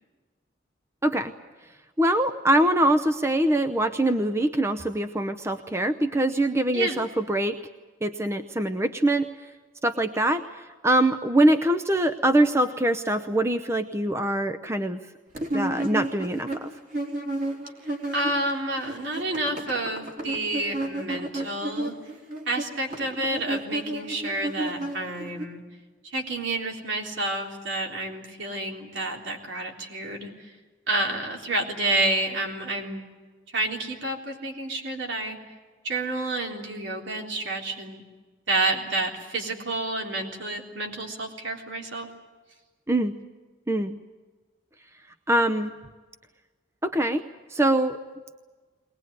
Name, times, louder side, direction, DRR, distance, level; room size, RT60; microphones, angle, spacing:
voice 1, 2.0-7.6 8.0-9.3 9.8-10.4 10.8-15.0 15.5-16.7 42.9-43.1 43.7-44.0 45.3-45.7 46.8-47.2 47.5-48.0, right 1 dB, 15° right, 9 dB, 0.7 m, -23 dB
sound 1, 15.4-18.5 18.8-25.5, right 1 dB, 40° right, 3.6 m, -32 dB
voice 2, 18.1-21.9 22.5-25.6 26.1-30.3 30.9-33.1 33.5-35.4 35.8-38.0 38.5-42.1, right 2 dB, 70° right, 1 dB, 3.7 m, -29 dB
22.5 x 19.5 x 9.5 m, 1.4 s
head